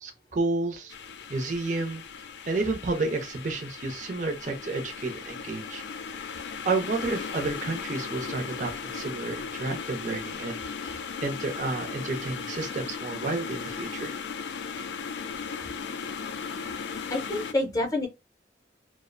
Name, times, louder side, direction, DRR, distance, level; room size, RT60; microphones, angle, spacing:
voice 1, 0.0-0.9 1.3-2.0 2.5-5.8 6.6-14.1, right 3 dB, 45° right, 0.5 m, -31 dB
sound 1, 0.9-17.5, left 6 dB, 70° left, 0.3 m, -37 dB
voice 2, 17.1-18.1, left 2 dB, 20° left, 0.6 m, -27 dB
2.4 x 2.0 x 2.5 m
head